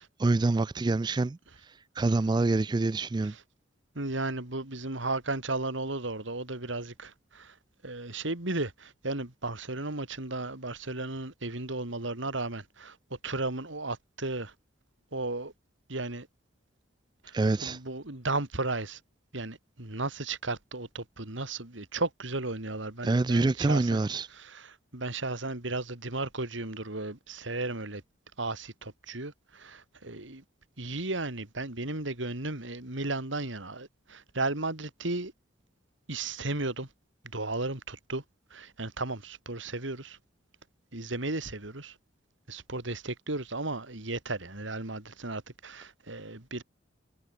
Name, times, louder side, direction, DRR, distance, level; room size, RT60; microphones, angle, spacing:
voice 1, 0.0-3.3 17.3-17.8 23.0-24.3, right 2 dB, 20° right, 0.3 m, -26 dB
voice 2, 3.9-7.5 7.8-14.5 15.1-15.5 15.9-16.3 17.2-17.3 17.6-19.0 19.3-24.0 24.3-24.7 24.9-28.0 28.4-30.4 30.8-35.3 36.1-36.9 37.3-38.2 38.5-40.2 40.9-41.9 42.5-46.6, right 2 dB, 75° right, 3.1 m, -34 dB
head